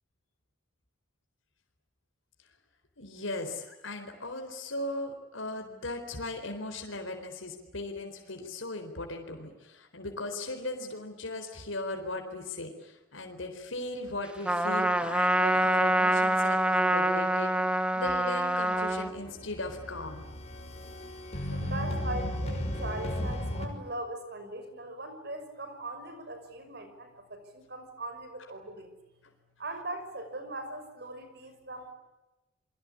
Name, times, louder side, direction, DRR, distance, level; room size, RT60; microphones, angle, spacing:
voice 1, 3.0-17.5 17.9-20.2, left 2 dB, 80° left, 4 dB, 4.2 m, -38 dB
Trumpet, 14.5-19.1, right 1 dB, 5° right, 1.4 m, -26 dB
sound 1, 18.9-23.7, equal, 35° left, 5.6 m, -35 dB
voice 2, 21.5-28.9 29.6-31.9, right 2 dB, 55° right, 8 dB, 6.0 m, -40 dB
29.0 x 23.0 x 8.6 m, 1.0 s
head